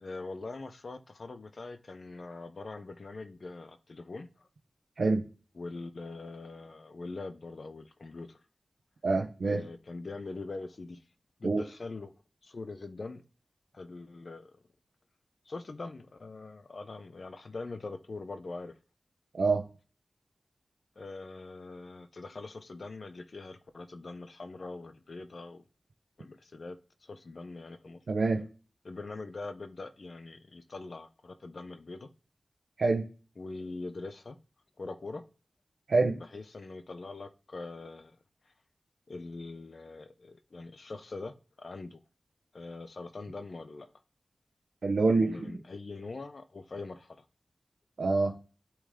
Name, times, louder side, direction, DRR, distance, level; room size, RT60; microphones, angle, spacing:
voice 1, 0.0-4.5 5.6-8.4 9.4-11.0 11.4-12.1 12.4-13.2 13.7-14.5 15.5-18.7 21.0-25.6 26.2-28.0 28.8-32.1 33.4-34.4 34.8-35.2 36.2-38.2 39.1-42.0 42.5-43.9 45.2-47.2, left 3 dB, 60° left, 0.6 m, -43 dB
voice 2, 5.0-5.3 9.0-9.6 11.4-11.6 19.3-19.6 28.1-28.5 32.8-33.1 35.9-36.2 44.8-45.4 48.0-48.4, right 3 dB, 75° right, 0.9 m, -26 dB
8.3 x 3.1 x 3.6 m
wide cardioid pair, 70°, 0 cm